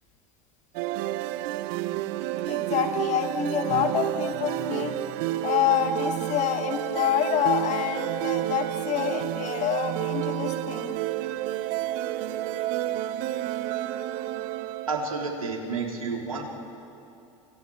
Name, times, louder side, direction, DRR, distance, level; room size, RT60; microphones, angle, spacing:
sound 1, 0.7-15.3, right 15 dB, 55° right, 0.9 m, -30 dB
voice 1, 2.4-4.9 5.4-11.0, left 9 dB, 45° left, 7 dB, 2.2 m, -27 dB
voice 2, 14.9-16.4, right 4 dB, 90° right, 0 dB, 3.6 m, -30 dB
29.5 x 28.0 x 4.7 m, 2.6 s
hypercardioid pair, 80°, 17 cm